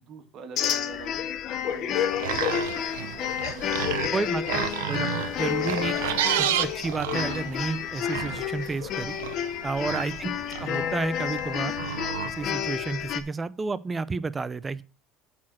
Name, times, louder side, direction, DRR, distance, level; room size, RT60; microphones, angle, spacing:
voice 1, 0.1-1.2 1.7-2.0 2.3-4.2 4.6-4.9 5.5-5.8 9.9-10.2 11.5-11.7, right 6 dB, 50° right, 5 dB, 1.9 m, -45 dB
sound 1, 0.6-13.2, left 10 dB, 55° left, 0.9 m, -30 dB
sound 2, 1.9-12.8, right 12 dB, 90° right, 0.6 m, -32 dB
voice 2, 4.1-5.1 5.4-6.0 6.4-9.2 9.6-10.3 10.6-11.7 12.2-14.8, right 4 dB, 20° right, 17 dB, 0.6 m, -31 dB
8.3 x 4.4 x 6.1 m, 0.34 s
supercardioid pair, 100°, 0 cm